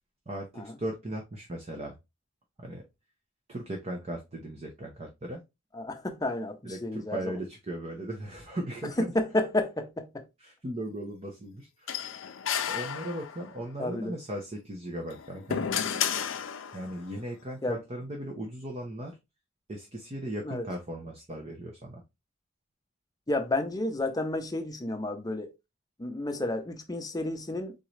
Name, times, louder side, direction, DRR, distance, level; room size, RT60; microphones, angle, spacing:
voice 1, 0.3-2.0 2.6-2.8 3.5-5.4 6.6-9.1 10.4-12.2 12.7-15.6 16.7-19.2 19.7-22.0, right 1 dB, 30° right, 0.8 m, -37 dB
voice 2, 5.7-7.4 9.0-10.2 13.8-14.2 17.6-17.8 20.4-20.7 23.3-25.5 26.0-27.7, left 2 dB, 20° left, 0.7 m, -31 dB
sound 1, 11.9-13.6 15.0-17.0, left 8 dB, 80° left, 0.6 m, -32 dB
4.1 x 3.7 x 3.2 m
head